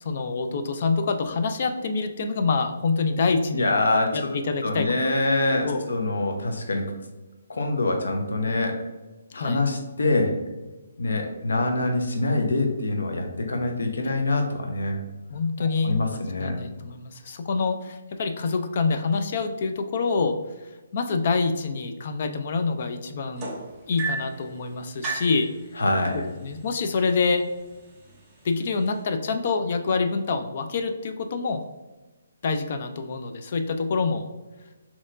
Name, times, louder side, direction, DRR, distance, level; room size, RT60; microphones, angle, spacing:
voice 1, 0.0-3.7 4.1-5.2 5.6-5.9 9.3-9.6 14.0-14.1 15.3-16.0 16.4-23.5 23.9-25.5 25.7-25.8 26.4-27.5 28.4-31.6 32.4-34.3, left 4 dB, 40° left, 7 dB, 0.4 m, -26 dB
voice 2, 3.5-4.3 4.6-6.9 7.5-8.8 9.3-10.3 11.0-15.0 15.6-16.5 25.8-26.2, left 2 dB, 90° left, 3 dB, 0.8 m, -25 dB
sound 1, 23.4-24.4 25.0-25.4 26.4-26.5 27.0-27.3 28.1-28.2, right 4 dB, 10° right, 0.6 m, -32 dB
4.2 x 2.9 x 2.5 m, 1.1 s
hypercardioid pair, 170°, 0 cm